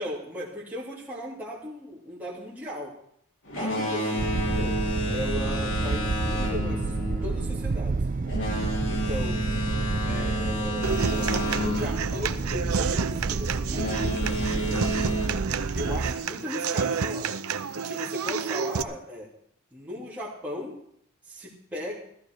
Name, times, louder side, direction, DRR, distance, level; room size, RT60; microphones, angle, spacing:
voice 1, 0.0-3.0 3.5-4.8 5.1-8.0 8.9-9.4 10.0-14.8 15.7-17.3 17.7-19.3 19.7-20.7 21.3-22.0, left 1 dB, 10° right, -7 dB, 2.8 m, -37 dB
Boat Water vehicle, 3.5-12.9 13.7-15.3, left 1 dB, 65° left, 3.7 m, -31 dB
sound 1, 4.2-16.1, right 3 dB, 40° right, 0.5 m, -30 dB
Human voice / Acoustic guitar, 10.8-18.8, right 5 dB, 80° right, 0.7 m, -30 dB
15.5 x 14.0 x 4.7 m, 0.67 s
head